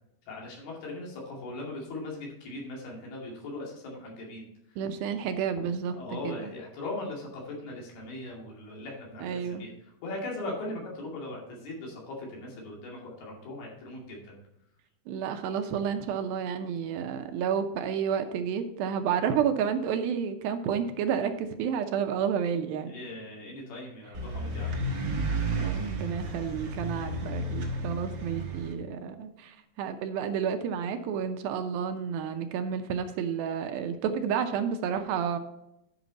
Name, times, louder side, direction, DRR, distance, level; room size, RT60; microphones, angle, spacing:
voice 1, 0.3-4.5 6.0-9.7 10.0-14.4 22.9-24.7, left 2 dB, 80° left, -2 dB, 4.4 m, -39 dB
voice 2, 4.8-6.0 6.2-6.5 9.2-9.7 15.1-22.9 25.6-35.4, right 7 dB, 80° right, 7 dB, 2.4 m, -30 dB
sound 1, 24.1-28.7, right 2 dB, 60° right, 1.1 m, -32 dB
10.5 x 6.0 x 4.0 m, 0.83 s
omnidirectional pair, 4.4 m